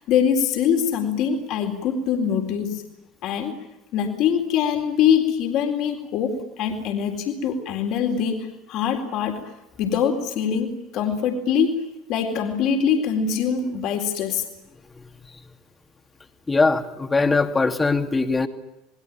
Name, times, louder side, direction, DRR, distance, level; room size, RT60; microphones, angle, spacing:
voice 1, 0.0-2.8 3.2-3.6 3.9-9.5 9.8-11.8 12.1-14.5, left 7 dB, 50° left, 3 dB, 4.0 m, -23 dB
voice 2, 16.5-18.5, left 3 dB, 15° left, 6 dB, 2.7 m, -21 dB
29.0 x 21.0 x 8.9 m, 0.92 s
figure-of-eight pair, 70°, 0 cm